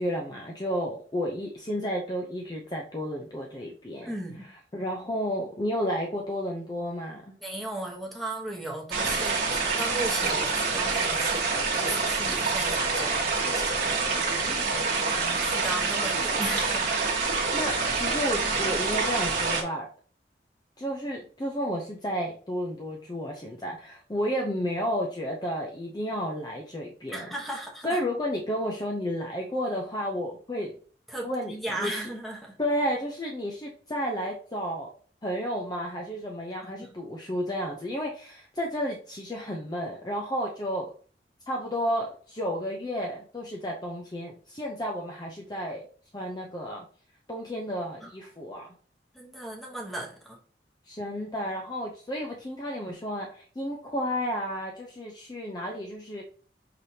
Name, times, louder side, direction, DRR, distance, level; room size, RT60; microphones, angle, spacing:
voice 1, 0.0-4.1 4.7-7.3 16.8-19.9 20.8-27.3 27.8-30.8 31.2-32.0 32.6-34.9 35.2-40.9 41.5-45.8 46.1-46.9 47.3-48.7 50.9-56.2, equal, 25° left, -1 dB, 0.6 m, -32 dB
voice 2, 4.0-4.4 7.4-14.1 15.0-16.9 27.1-28.0 31.1-32.6 36.8-36.9 37.2-37.3 48.0-48.1 49.1-50.4, right 1 dB, ahead, -1 dB, 1.0 m, -36 dB
sound 1, 8.9-19.6, right 4 dB, 50° right, 1.3 m, -27 dB
5.8 x 3.3 x 2.8 m, 0.43 s
head